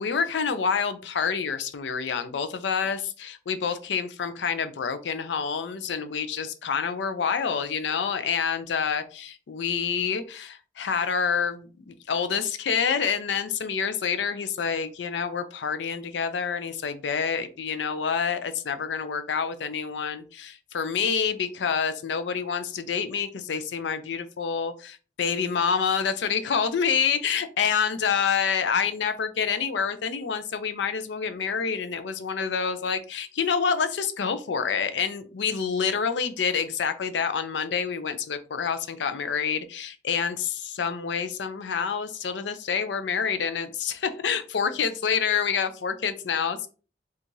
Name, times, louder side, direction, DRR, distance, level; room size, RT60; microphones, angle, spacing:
voice 1, 0.0-46.7, left 6 dB, 80° left, 10 dB, 0.4 m, -27 dB
4.5 x 2.4 x 2.6 m, 0.36 s
head